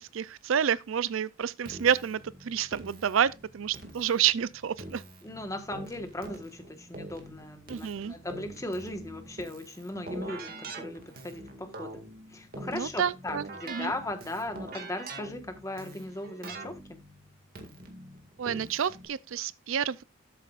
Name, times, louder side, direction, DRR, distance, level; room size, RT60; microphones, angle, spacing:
voice 1, 0.0-5.0 7.7-8.1 12.7-13.9 18.4-20.0, right 8 dB, 75° right, 0.4 m, -29 dB
Keyboard (musical), 1.6-19.1, right 2 dB, 45° right, 2.0 m, -44 dB
voice 2, 5.2-12.0 12.3-17.0, left 1 dB, 15° left, 1.3 m, -38 dB
13.0 x 7.7 x 2.4 m
head